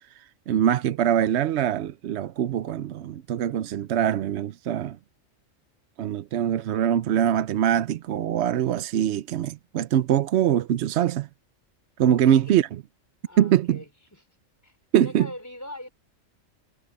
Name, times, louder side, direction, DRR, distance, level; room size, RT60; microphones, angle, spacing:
voice 1, 0.5-5.0 6.0-11.3 12.0-12.7 13.4-13.8 14.9-15.3, right 10 dB, 65° right, 0.8 m, -23 dB
voice 2, 12.2-12.5 13.3-14.2 14.6-15.9, left 1 dB, 10° left, 4.0 m, -41 dB
omnidirectional pair, 1.3 m